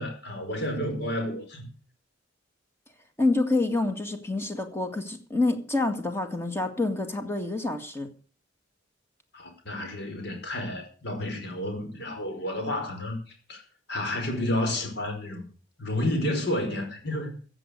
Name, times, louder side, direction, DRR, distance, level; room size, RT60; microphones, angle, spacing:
voice 1, 0.0-1.7 9.3-13.2 13.5-13.6 13.9-15.4 15.8-17.3, left 1 dB, 60° left, 5.3 m, -30 dB
voice 2, 3.2-8.1, left 2 dB, 15° left, 1.9 m, -27 dB
15.5 x 7.8 x 6.8 m
head